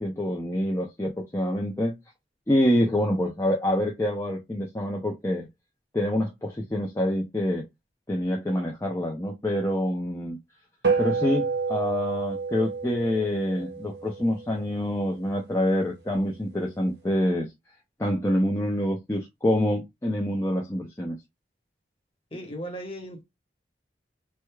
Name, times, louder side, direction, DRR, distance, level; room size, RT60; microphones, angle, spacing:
voice 1, 0.0-1.9 2.5-5.5 5.9-7.6 8.1-10.4 11.0-17.5 18.0-21.2, left 1 dB, 15° left, 0.5 m, -26 dB
sound 1, 10.8-15.5, right 5 dB, 65° right, 1.1 m, -29 dB
voice 2, 22.3-23.2, equal, 30° left, 1.1 m, -36 dB
4.6 x 2.1 x 2.2 m
head